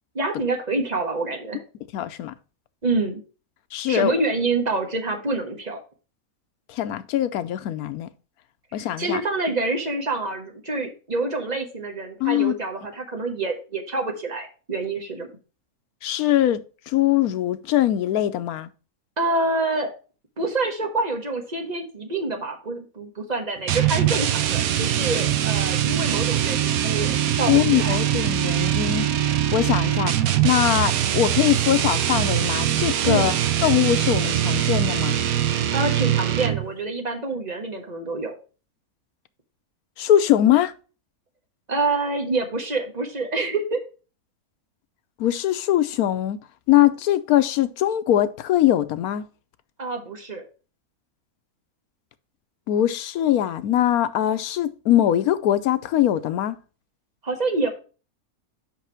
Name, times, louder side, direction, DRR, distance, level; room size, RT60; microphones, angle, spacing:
voice 1, 0.1-1.6 2.8-3.2 3.9-5.8 8.8-15.3 19.2-19.9 20.4-28.0 33.0-33.3 35.7-38.3 41.7-43.8 49.8-50.4 57.2-57.7, right 3 dB, 30° right, 1.4 m, -27 dB
voice 2, 1.9-2.3 3.7-4.1 6.7-8.1 8.7-9.2 12.2-12.5 16.0-18.7 27.5-29.1 29.5-30.2 30.4-33.3 33.6-35.2 40.0-40.7 45.2-46.4 46.7-49.2 52.7-56.6, left 12 dB, 90° left, 1.1 m, -22 dB
sound 1, 23.7-36.8, right 11 dB, 75° right, 1.1 m, -22 dB
5.8 x 5.5 x 5.7 m
omnidirectional pair, 1.5 m